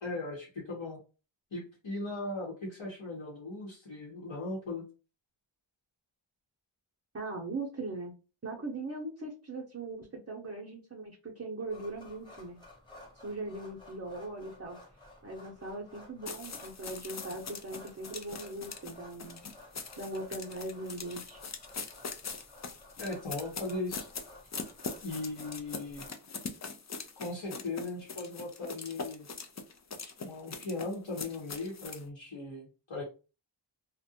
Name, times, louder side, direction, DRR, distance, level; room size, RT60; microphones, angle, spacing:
voice 1, 0.0-1.0 1.5-4.8 23.0-24.1 25.0-26.1 27.2-29.3 30.2-33.0, left 2 dB, 70° left, -5 dB, 1.0 m, -38 dB
voice 2, 7.1-8.1 8.4-12.6 13.2-14.8 15.2-19.4 20.0-21.4, right 2 dB, 30° right, -2 dB, 0.6 m, -40 dB
sound 1, 11.7-26.1, left 1 dB, 10° left, 1.0 m, -54 dB
sound 2, 16.3-32.0, left 4 dB, 35° left, 0.4 m, -42 dB
2.4 x 2.1 x 2.7 m, 0.33 s
wide cardioid pair, 45°, 49 cm